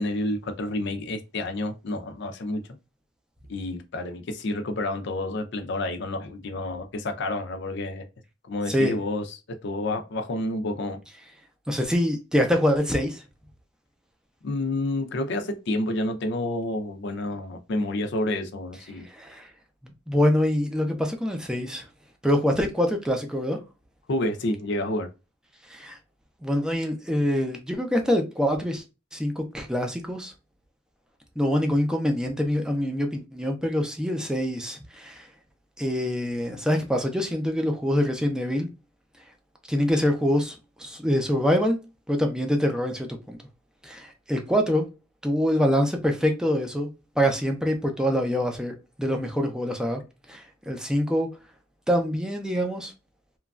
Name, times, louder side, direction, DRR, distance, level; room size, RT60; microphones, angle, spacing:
voice 1, 0.0-2.6 3.5-8.0 8.5-11.0 14.4-19.1 24.1-25.1, left 1 dB, 65° left, 0.5 m, -29 dB
voice 2, 11.7-13.2 19.0-19.5 20.1-21.9 22.2-23.6 25.7-26.0 26.4-28.8 29.1-30.3 31.4-35.3 35.8-38.7 39.7-41.8 42.1-43.4 43.8-44.9 45.2-46.9 47.2-50.0 50.3-51.3 51.9-52.9, equal, 5° right, 0.5 m, -25 dB
3.0 x 2.3 x 2.3 m
head